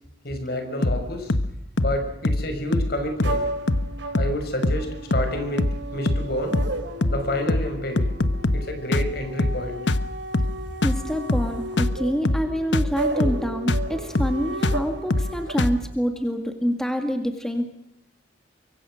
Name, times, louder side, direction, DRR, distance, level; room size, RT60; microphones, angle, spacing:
voice 1, 0.2-1.3 1.8-3.4 4.2-6.6 7.1-8.0 8.5-9.8, left 1 dB, 55° left, 6 dB, 6.0 m, -29 dB
sound 1, 0.8-1.0 1.3-1.5 1.8-2.0 2.2-2.5 2.7-2.9 3.2-3.4 3.7-3.9 4.1-4.4 4.6-4.8 5.1-5.3 5.6-5.8 6.1-6.3 6.5-6.7 7.0-7.2 7.5-7.7 8.0-8.7 8.9-9.1 9.4-9.6 9.9-10.1 10.3-10.6 10.8-11.0 11.3-11.5 11.8-12.0 12.2-12.5 12.7-12.9 13.2-13.4 13.7-13.9 14.1-14.4 14.6-14.8 15.1-15.3 15.6-15.8, left 2 dB, 70° left, 1.2 m, -23 dB
sound 2, 3.2-15.5, right 2 dB, 85° right, 4.5 m, -34 dB
voice 2, 10.8-17.6, equal, 5° left, 5 dB, 2.0 m, -26 dB
25.0 x 23.5 x 6.4 m, 0.84 s
head